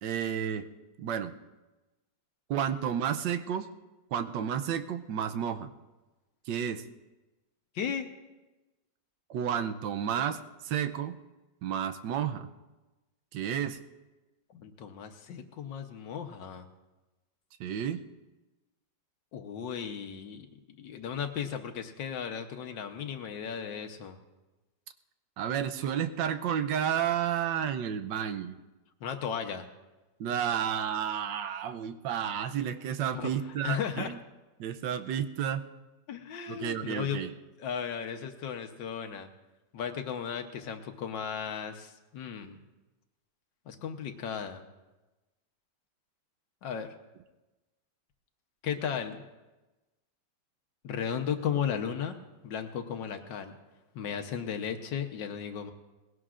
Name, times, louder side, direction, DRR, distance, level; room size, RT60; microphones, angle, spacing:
voice 1, 0.0-0.7 1.0-1.3 2.5-3.7 4.1-5.7 6.5-6.8 9.3-11.2 11.6-12.5 13.3-13.8 17.6-18.0 25.4-28.5 30.2-34.2 34.6-35.7 36.5-37.3, right 9 dB, 85° right, 8 dB, 1.4 m, -31 dB
voice 2, 7.7-8.1 14.5-16.7 19.3-24.2 29.0-29.7 33.1-33.3 33.6-34.1 36.1-37.2 37.6-39.3 39.7-42.6 43.7-44.6 46.6-46.9 48.6-49.2 50.8-52.2 52.4-53.6 53.9-55.7, left 7 dB, 85° left, 6 dB, 1.7 m, -35 dB
20.0 x 17.0 x 2.5 m, 1.1 s
omnidirectional pair, 1.9 m